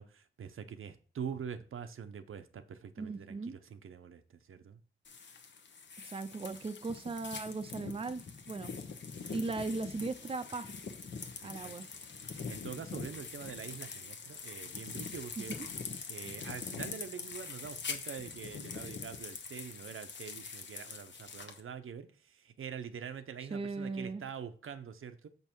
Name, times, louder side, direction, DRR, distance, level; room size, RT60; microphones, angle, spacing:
voice 1, 0.0-4.8 11.4-11.7 12.2-15.5 16.1-25.3, right 7 dB, 90° right, 0.8 m, -45 dB
voice 2, 3.0-3.6 6.0-8.7 9.3-10.7 11.4-11.9 15.4-15.5 23.5-24.2, right 3 dB, 30° right, 0.5 m, -38 dB
sound 1, 5.0-21.6, left 5 dB, 60° left, 1.1 m, -44 dB
7.2 x 5.5 x 4.5 m
wide cardioid pair, 150°, 21 cm